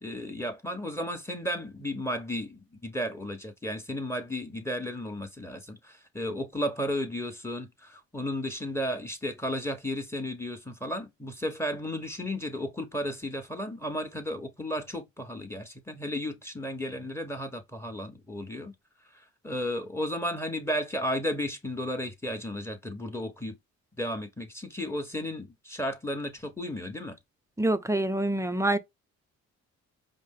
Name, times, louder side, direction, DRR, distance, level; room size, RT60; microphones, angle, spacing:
voice 1, 0.0-18.7 19.4-23.5 24.0-27.2, equal, 10° left, 1.2 m, -34 dB
voice 2, 27.6-28.8, right 1 dB, 10° right, 0.5 m, -26 dB
5.1 x 2.1 x 3.6 m
cardioid pair, 90°, 30 cm